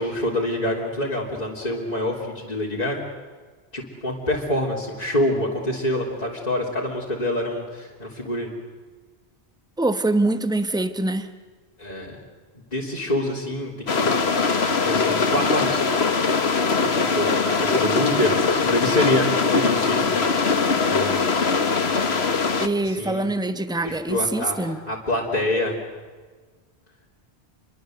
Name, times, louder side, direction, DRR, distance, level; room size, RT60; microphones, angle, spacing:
voice 1, 0.0-3.0 3.7-8.5 11.8-12.2 12.7-14.2 14.8-15.8 16.8-20.1 20.9-21.3 22.8-23.2 23.8-24.6 24.9-25.8, left 1 dB, 40° left, -5 dB, 3.6 m, -26 dB
voice 2, 9.8-11.3 22.6-24.8, right 2 dB, 5° right, 10 dB, 1.2 m, -24 dB
sound 1, 13.9-22.7, left 4 dB, 80° left, 1.7 m, -21 dB
28.0 x 23.5 x 8.0 m, 1.4 s
omnidirectional pair, 1.1 m